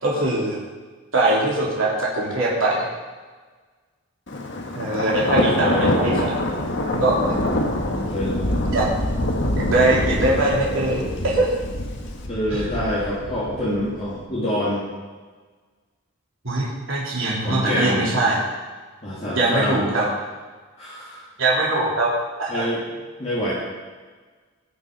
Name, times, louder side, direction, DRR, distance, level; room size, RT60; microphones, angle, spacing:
voice 1, 0.0-0.6 1.1-2.8 4.8-6.3 6.9-7.3 8.7-8.9 9.6-11.5 12.5-12.7 16.4-18.4 19.3-20.1 21.4-22.1 22.4-22.7, right 2 dB, 60° right, -5 dB, 3.6 m, -21 dB
Thunder, 4.3-14.1, left 1 dB, 55° left, 1.6 m, -25 dB
voice 2, 5.6-6.4 7.8-8.7 12.3-14.8 17.4-18.1 19.0-19.9 20.8-21.2 22.5-22.8 23.2-23.5, equal, 30° left, -9 dB, 3.1 m, -26 dB
20.0 x 6.8 x 5.6 m, 1.4 s
head